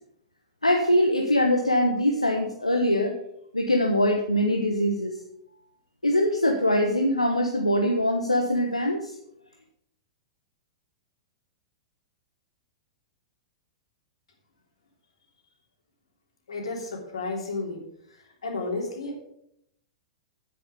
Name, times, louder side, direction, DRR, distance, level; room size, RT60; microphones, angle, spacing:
voice 1, 0.6-3.2 3.5-5.1 6.0-9.1, left 1 dB, 85° left, 2 dB, 1.1 m, -23 dB
voice 2, 16.5-17.8 18.4-19.2, left 3 dB, 70° left, 0 dB, 3.3 m, -32 dB
9.7 x 9.2 x 5.3 m, 0.75 s
figure-of-eight pair, 100°, 3 cm